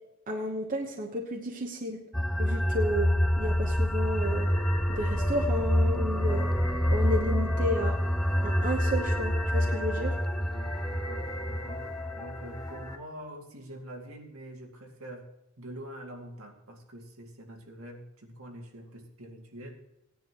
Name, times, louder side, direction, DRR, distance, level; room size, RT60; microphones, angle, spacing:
voice 1, 0.3-2.0 2.4-3.1 3.4-4.5 4.9-6.5 6.9-8.0 8.4-10.2, equal, 40° right, 1 dB, 1.1 m, -32 dB
sound 1, 2.1-12.9, equal, ahead, 0.3 m, -27 dB
sound 2, 4.2-13.0, left 1 dB, 20° left, 1.0 m, -41 dB
voice 2, 10.4-11.8 12.2-15.3 15.6-19.8, right 1 dB, 80° right, 1 dB, 2.2 m, -45 dB
17.0 x 10.5 x 3.0 m, 0.89 s
head